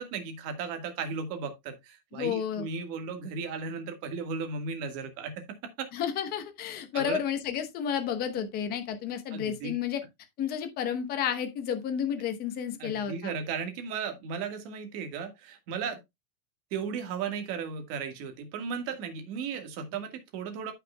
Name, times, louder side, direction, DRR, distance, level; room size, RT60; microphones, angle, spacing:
voice 1, 0.0-5.3 5.8-5.9 6.9-7.2 9.3-9.7 12.8-16.0 16.7-20.7, right 6 dB, 35° right, 1.7 m, -35 dB
voice 2, 2.1-2.7 5.9-10.0 10.4-13.3, left 8 dB, 20° left, 1.0 m, -31 dB
14.0 x 5.8 x 2.3 m
supercardioid pair, 165°, 44 cm